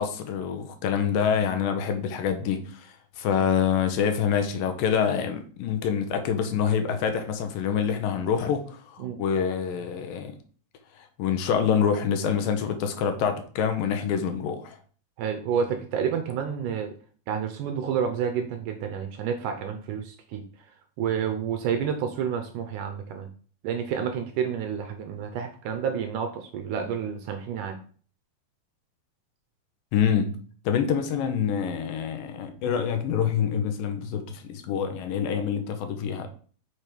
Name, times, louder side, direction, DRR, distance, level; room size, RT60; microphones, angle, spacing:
voice 1, 0.0-10.4 11.0-14.8 29.9-30.4 30.7-36.3, left 7 dB, 80° left, 2.5 m, -26 dB
voice 2, 15.2-16.9 17.3-20.4 21.0-23.3 23.6-27.8, right 7 dB, 75° right, 2.0 m, -29 dB
6.2 x 5.1 x 4.5 m
omnidirectional pair, 4.2 m